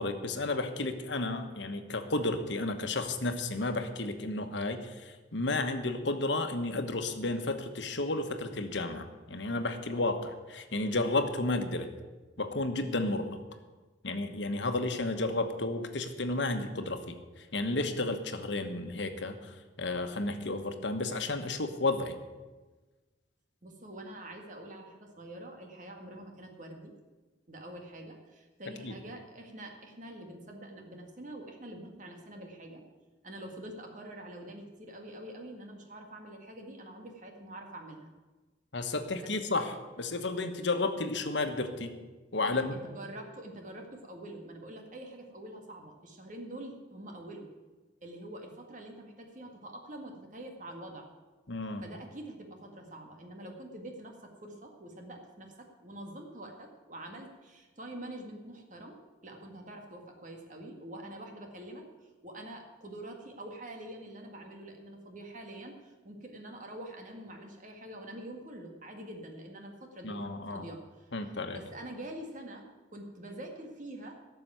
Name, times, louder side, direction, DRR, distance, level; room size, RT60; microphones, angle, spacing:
voice 1, 0.0-11.9 12.4-13.3 14.0-22.1 28.8-29.0 38.7-41.9 42.3-42.8 51.5-51.8 70.0-70.6 71.1-71.6, left 2 dB, 75° left, 7 dB, 1.2 m, -32 dB
voice 2, 23.6-26.9 27.5-32.8 33.2-38.1 39.1-39.3 42.4-47.5 48.0-51.1 51.8-71.1 71.5-74.2, right 1 dB, 45° right, 3 dB, 1.9 m, -45 dB
12.5 x 6.9 x 9.1 m, 1.3 s
head